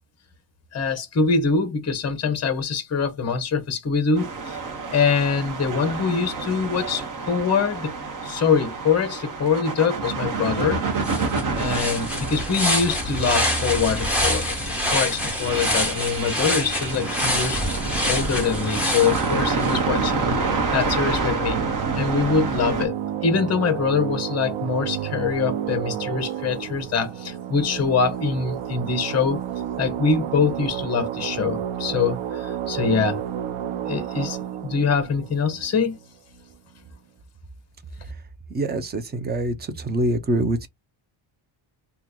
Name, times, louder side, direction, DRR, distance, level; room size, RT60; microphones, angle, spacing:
voice 1, 0.7-4.6 4.9-7.9 8.2-10.8 11.1-11.2 11.5-17.6 18.1-20.4 20.7-21.6 21.9-29.4 29.8-33.2 33.9-36.0, left 5 dB, 30° left, 0.9 m, -24 dB
sound 1, 4.1-22.9, right 4 dB, 40° right, 1.0 m, -28 dB
sound 2, 10.6-10.7 11.0-19.8, left 1 dB, 5° right, 1.2 m, -26 dB
sound 3, 18.3-36.4, right 10 dB, 80° right, 0.8 m, -31 dB
voice 2, 38.5-40.7, right 1 dB, 20° right, 0.5 m, -25 dB
2.9 x 2.4 x 3.6 m
cardioid pair, 155°, 49 cm